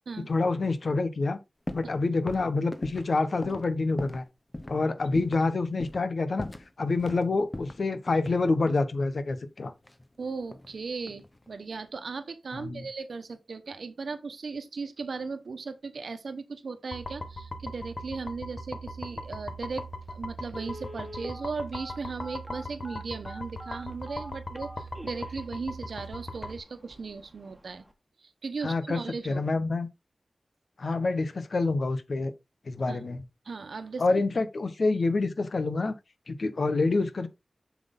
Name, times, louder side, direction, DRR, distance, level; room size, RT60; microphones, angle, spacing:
voice 1, 0.3-1.4 1.7-4.2 4.7-6.5 6.8-9.7 12.5-12.8 28.6-29.0 29.2-29.9 30.8-32.3 32.7-33.2 34.0-35.9 36.3-37.3, left 3 dB, 70° left, 1.2 m, -27 dB
sound 1, 1.7-2.0 2.3-4.3 4.5-4.8 5.2-5.5 5.8-6.1 6.4-7.2 7.5-8.9 9.8-10.8 11.0-11.5, left 1 dB, 30° left, 1.2 m, -40 dB
voice 2, 10.2-27.8 28.2-29.4 32.9-33.0 33.4-34.0, right 4 dB, 90° right, 1.1 m, -37 dB
sound 2, 16.9-26.6, left 1 dB, 50° left, 1.5 m, -40 dB
Telephone, 19.8-19.9 20.5-25.4 25.9-26.0 26.4-26.5 26.9-27.2 27.5-27.6, equal, 5° right, 1.9 m, -43 dB
7.6 x 6.1 x 3.8 m
wide cardioid pair, 65°, 0 cm